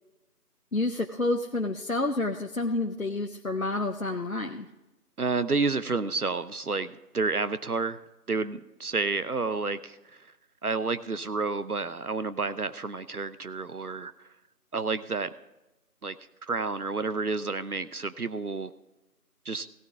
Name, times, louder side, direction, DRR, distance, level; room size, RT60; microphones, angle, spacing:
voice 1, 0.7-4.7, left 2 dB, 60° left, 3 dB, 0.8 m, -29 dB
voice 2, 5.2-8.0 8.3-10.2 10.6-14.1 14.7-15.3 16.0-16.1 16.5-18.7 19.5-19.7, right 4 dB, 65° right, 13 dB, 0.7 m, -30 dB
17.0 x 9.0 x 3.6 m, 1.0 s
figure-of-eight pair, 180°, 48 cm